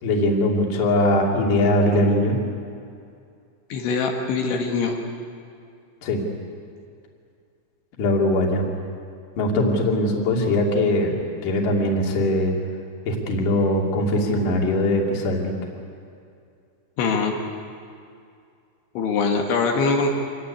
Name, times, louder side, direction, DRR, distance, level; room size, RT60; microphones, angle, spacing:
voice 1, 0.0-2.4 6.0-6.2 8.0-8.7 9.4-11.2 11.4-12.6 13.1-15.5, left 1 dB, 50° left, 0 dB, 4.0 m, -21 dB
voice 2, 3.7-5.0 17.0-17.3 19.0-20.1, left 4 dB, 75° left, 1 dB, 4.0 m, -22 dB
25.5 x 18.5 x 9.9 m, 2.4 s
omnidirectional pair, 5.4 m